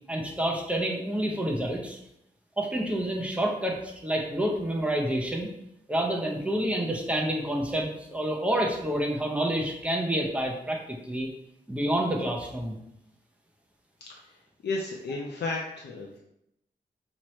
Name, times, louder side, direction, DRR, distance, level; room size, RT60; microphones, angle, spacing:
voice 1, 0.1-2.0 2.6-5.5 5.9-11.3 11.7-12.8, right 1 dB, 5° right, -1 dB, 0.6 m, -28 dB
voice 2, 14.0-14.4 14.6-16.2, left 3 dB, 90° left, -1 dB, 0.6 m, -33 dB
5.9 x 2.9 x 3.1 m, 0.82 s
wide cardioid pair, 175°, 17 cm